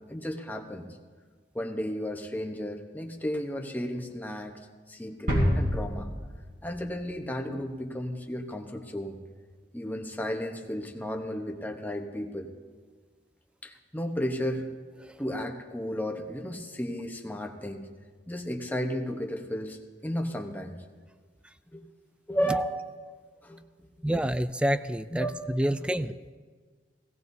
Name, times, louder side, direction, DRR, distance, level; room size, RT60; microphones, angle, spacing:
voice 1, 0.1-0.9 1.5-4.6 4.9-6.1 6.6-9.2 9.7-12.5 13.6-14.7 15.2-17.8 18.3-19.8 20.0-20.8 21.7-21.8 22.3-22.6 23.4-24.2 25.1-25.5, equal, 10° left, 3 dB, 0.9 m, -33 dB
sound 1, 5.3-7.1 7.4-7.5, equal, 55° right, 3.4 m, -28 dB
voice 2, 24.0-26.1, right 1 dB, 5° right, 13 dB, 0.3 m, -28 dB
17.5 x 17.0 x 2.7 m, 1.5 s
head